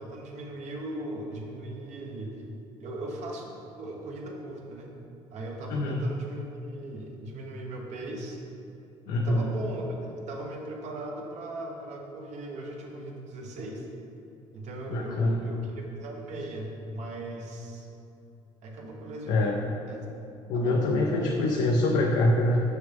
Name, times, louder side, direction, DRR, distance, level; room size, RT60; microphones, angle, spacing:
voice 1, 0.0-2.4 2.8-4.9 5.3-8.4 9.1-13.9 14.5-17.9 18.6-19.6 19.9-20.0 20.5-21.6, right 1 dB, 65° right, 0 dB, 1.2 m, -38 dB
voice 2, 5.7-6.0 9.1-9.4 14.9-15.4 19.3-19.6 20.5-22.6, left 2 dB, 80° left, 0 dB, 0.6 m, -24 dB
6.2 x 6.0 x 3.5 m, 2.8 s
cardioid pair, 90°, 13 cm